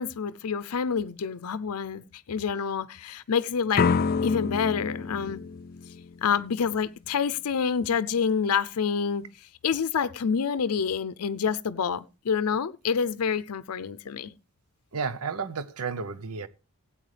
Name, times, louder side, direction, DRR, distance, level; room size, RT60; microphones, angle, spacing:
voice 1, 0.0-3.9 4.2-5.4 6.2-9.3 9.6-14.3, left 6 dB, 90° left, 0.5 m, -27 dB
sound 1, 3.7-6.6, left 5 dB, 45° left, 0.5 m, -28 dB
voice 2, 14.9-16.5, right 5 dB, 80° right, 0.8 m, -32 dB
16.5 x 8.8 x 3.3 m
head